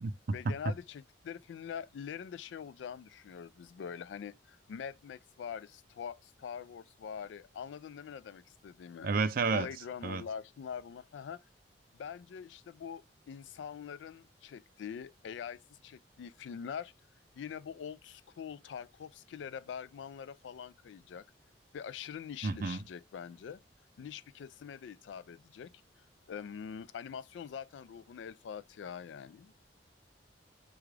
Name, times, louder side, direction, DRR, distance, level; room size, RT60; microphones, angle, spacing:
voice 1, 0.3-9.1 9.5-11.4 11.9-16.9 17.3-21.2 21.7-23.6 24.0-25.7 26.3-29.6, left 7 dB, 85° left, 0.3 m, -44 dB
voice 2, 9.0-9.7 10.0-10.2 22.4-22.8, right 4 dB, 55° right, 0.4 m, -30 dB
4.8 x 2.4 x 3.1 m
head